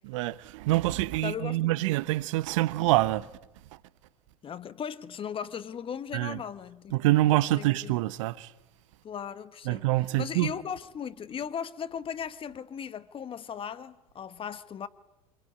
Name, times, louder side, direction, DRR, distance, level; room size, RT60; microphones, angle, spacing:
voice 1, 0.0-3.3 6.1-6.4 6.9-8.5 9.7-10.5, right 17 dB, 65° right, 1.1 m, -26 dB
voice 2, 1.2-1.9 4.4-7.1 7.6-8.0 9.0-9.9 10.2-14.9, left 8 dB, 30° left, 1.4 m, -37 dB
26.5 x 22.5 x 9.8 m
figure-of-eight pair, 75°, 18 cm